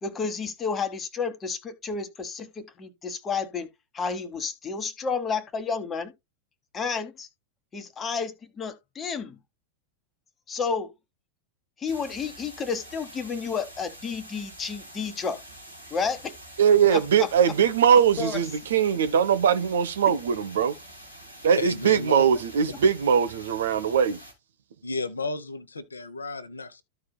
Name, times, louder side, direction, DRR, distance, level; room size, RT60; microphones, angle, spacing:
voice 1, 0.0-3.7 3.9-6.1 6.7-7.3 7.7-9.4 10.5-10.9 11.8-15.4 15.9-16.3 16.9-17.3 17.9-18.4, left 5 dB, 20° left, 1.2 m, -31 dB
sound 1, 11.9-24.3, right 1 dB, 90° right, 2.4 m, -46 dB
voice 2, 16.6-20.8 21.4-24.2, right 7 dB, 60° right, 0.8 m, -21 dB
voice 3, 21.6-22.2 24.8-26.8, left 3 dB, 75° left, 0.9 m, -32 dB
14.0 x 4.8 x 2.2 m
figure-of-eight pair, 90°, 0 cm